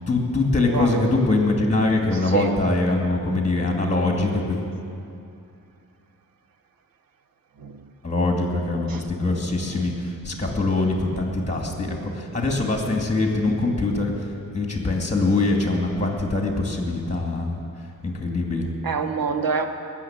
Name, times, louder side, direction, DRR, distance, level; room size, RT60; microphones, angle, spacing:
voice 1, 0.1-4.7 8.0-14.1 14.5-17.6 18.0-18.7, left 2 dB, 20° left, 1 dB, 2.4 m, -23 dB
voice 2, 0.7-1.1 2.3-2.5 7.6-7.8 8.9-9.0 9.7-9.8 18.8-19.6, right 5 dB, 80° right, 6 dB, 1.3 m, -26 dB
20.0 x 6.8 x 8.9 m, 2.5 s
wide cardioid pair, 105°, 34 cm